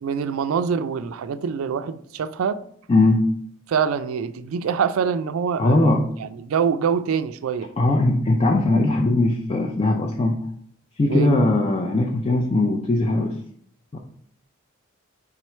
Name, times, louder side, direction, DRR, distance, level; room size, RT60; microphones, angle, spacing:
voice 1, 0.0-2.6 3.7-7.7 11.1-11.3, right 6 dB, 90° right, 0.4 m, -25 dB
voice 2, 2.9-3.3 5.6-6.1 7.8-10.4 11.0-13.4 13.9-14.0, left 2 dB, 30° left, 0.4 m, -20 dB
4.4 x 3.8 x 3.1 m
head